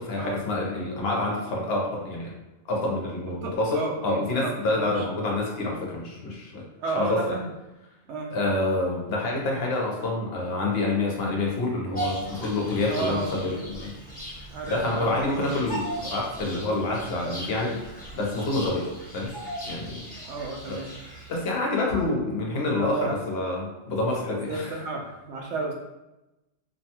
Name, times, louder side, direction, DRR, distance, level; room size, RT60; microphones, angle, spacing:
voice 1, 0.0-2.3 2.7-6.6 7.0-7.4 8.3-13.9 14.7-19.3 19.6-20.0 20.7-20.8 21.3-24.8, left 2 dB, 65° left, -2 dB, 0.9 m, -27 dB
voice 2, 3.4-5.0 6.8-7.5 8.1-8.3 12.9-13.4 14.5-15.2 20.3-20.9 22.7-23.2 24.5-25.7, right 3 dB, 80° right, 0 dB, 0.9 m, -32 dB
Bird vocalization bird call bird song, 11.9-21.6, right 1 dB, 10° left, 1.0 m, -38 dB
2.7 x 2.2 x 2.8 m, 0.99 s
omnidirectional pair, 1.2 m